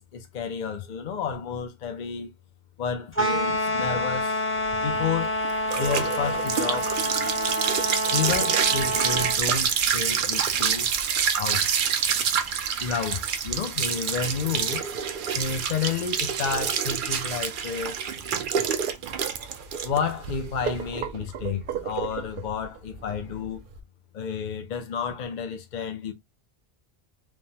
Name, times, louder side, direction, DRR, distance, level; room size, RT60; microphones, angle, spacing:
voice 1, 0.1-2.3 2.8-4.4 4.8-5.4 5.8-6.9 8.1-10.9 11.3-11.7 12.8-14.8 15.3-18.0 19.8-23.6 24.1-26.1, left 6 dB, 55° left, 0.6 m, -31 dB
sound 1, 3.1-9.4, equal, 15° left, 0.6 m, -27 dB
sound 2, 4.7-23.8, right 7 dB, 60° right, 0.6 m, -27 dB
3.3 x 2.1 x 2.7 m
omnidirectional pair, 1.1 m